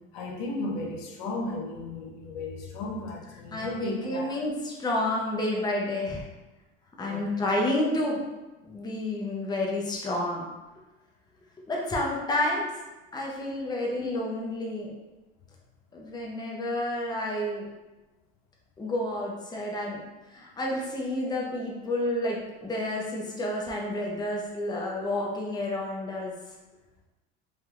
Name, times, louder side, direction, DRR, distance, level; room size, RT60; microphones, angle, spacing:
voice 1, 0.1-4.5 7.0-7.4 14.0-14.1, left 2 dB, 80° left, 0 dB, 0.7 m, -35 dB
voice 2, 3.5-6.3 7.0-8.2 8.7-10.5 11.7-12.7 13.1-14.9 15.9-17.7 18.8-20.0 20.3-26.3, left 1 dB, 15° left, -2 dB, 0.6 m, -30 dB
3.4 x 2.7 x 2.3 m, 1.1 s
supercardioid pair, 95°, 29 cm